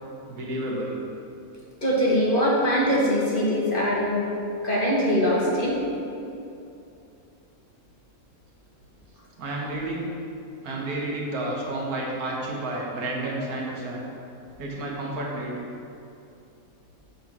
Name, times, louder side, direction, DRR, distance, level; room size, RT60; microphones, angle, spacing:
voice 1, 0.3-1.0 9.4-10.1 10.6-14.1 14.6-15.5, right 1 dB, 85° right, -2 dB, 1.6 m, -30 dB
voice 2, 1.8-4.3 4.6-5.7, equal, 40° left, -5 dB, 1.3 m, -22 dB
7.2 x 4.0 x 5.9 m, 2.7 s
omnidirectional pair, 1.5 m